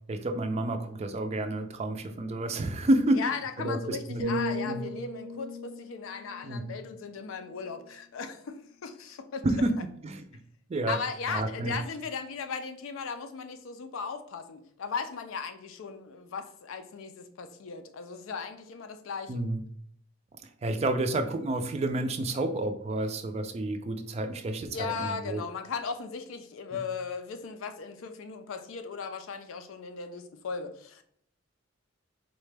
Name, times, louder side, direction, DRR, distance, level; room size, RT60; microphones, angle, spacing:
voice 1, 0.1-3.2 3.6-4.4 4.7-4.8 6.4-6.6 9.4-9.8 10.0-10.2 10.7-11.0 11.3-11.7 19.3-19.6 20.6-25.4 26.7-26.8, right 1 dB, 30° right, 7 dB, 0.3 m, -29 dB
voice 2, 3.2-9.5 10.9-19.4 24.7-31.0, left 5 dB, 85° left, 8 dB, 0.4 m, -37 dB
sound 1, 4.2-8.2 8.5-8.9, left 1 dB, 80° right, 0.6 m, -38 dB
3.9 x 2.2 x 3.2 m, 0.66 s
head